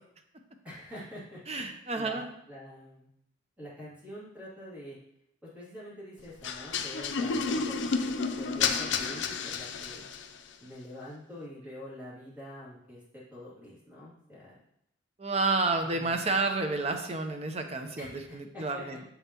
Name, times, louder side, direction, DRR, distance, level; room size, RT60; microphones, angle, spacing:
voice 1, 0.6-3.1 3.6-5.0 5.4-10.0 10.6-14.6 15.8-16.3 18.0-18.8, left 1 dB, 10° right, -8 dB, 2.5 m, -46 dB
voice 2, 1.5-2.3 15.2-19.0, right 3 dB, 35° right, 5 dB, 0.7 m, -30 dB
sound 1, 6.4-10.4, left 5 dB, 70° left, 0.5 m, -31 dB
7.1 x 5.4 x 2.9 m, 0.77 s
head